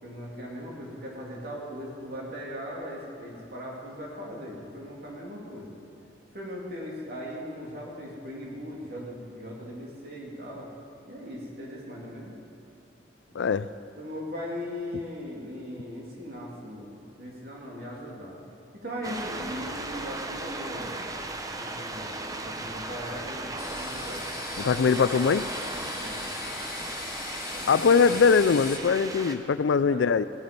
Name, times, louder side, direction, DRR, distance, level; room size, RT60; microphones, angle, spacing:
voice 1, 0.0-5.7 6.3-10.7 11.1-12.3 13.3-13.4 14.0-18.4 18.7-20.9 21.6-24.2 26.0-26.3 27.5-28.2 29.8-30.1, equal, 55° right, -3 dB, 2.8 m, -39 dB
voice 2, 13.4-13.7 24.6-25.5 27.7-30.2, left 5 dB, 80° left, 15 dB, 0.4 m, -22 dB
sound 1, 19.0-29.4, right 2 dB, 20° right, 0.7 m, -36 dB
sound 2, 23.6-28.8, left 5 dB, 50° left, 1.4 m, -39 dB
17.0 x 9.5 x 5.2 m, 2.6 s
head